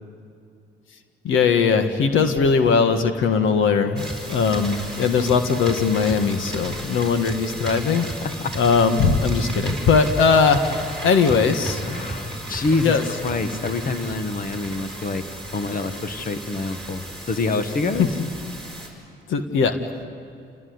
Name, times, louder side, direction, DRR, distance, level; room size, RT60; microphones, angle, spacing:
voice 1, 1.2-8.1 8.6-11.8 12.8-13.0 18.2-18.3 19.3-19.8, left 5 dB, 80° left, 7 dB, 1.7 m, -20 dB
sound 1, 4.0-18.9, right 1 dB, 5° left, 5.5 m, -34 dB
voice 2, 8.2-8.5 11.8-15.2 15.5-18.1, left 3 dB, 45° left, 9 dB, 1.6 m, -26 dB
28.0 x 18.5 x 9.6 m, 2.5 s
cardioid pair, 90°, 20 cm